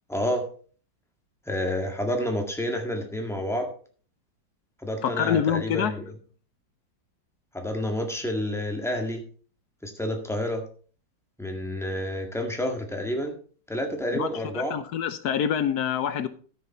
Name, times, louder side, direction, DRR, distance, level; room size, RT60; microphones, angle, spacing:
voice 1, 0.1-0.5 1.5-3.7 4.8-6.1 7.5-9.2 9.8-10.6 11.4-13.4 13.7-14.8, left 1 dB, ahead, 2 dB, 1.7 m, -29 dB
voice 2, 5.0-5.9 14.1-14.3 14.5-16.3, left 8 dB, 65° left, 12 dB, 1.1 m, -26 dB
13.0 x 6.9 x 4.2 m, 0.42 s
omnidirectional pair, 2.0 m